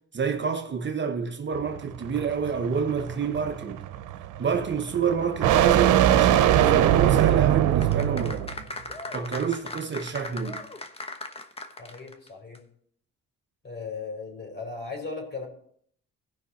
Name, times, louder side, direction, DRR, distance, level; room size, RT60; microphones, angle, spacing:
voice 1, 0.1-3.8 4.4-8.5 9.1-10.6, right 6 dB, 40° right, 0.9 m, -28 dB
sound 1, 1.5-8.6, right 11 dB, 90° right, 0.8 m, -22 dB
sound 2, 7.8-12.3 12.6-12.7, left 2 dB, 20° left, 1.1 m, -38 dB
voice 2, 11.8-12.6 13.6-15.5, left 4 dB, 35° left, 4.5 m, -37 dB
16.5 x 5.7 x 4.3 m
cardioid pair, 90°, 30 cm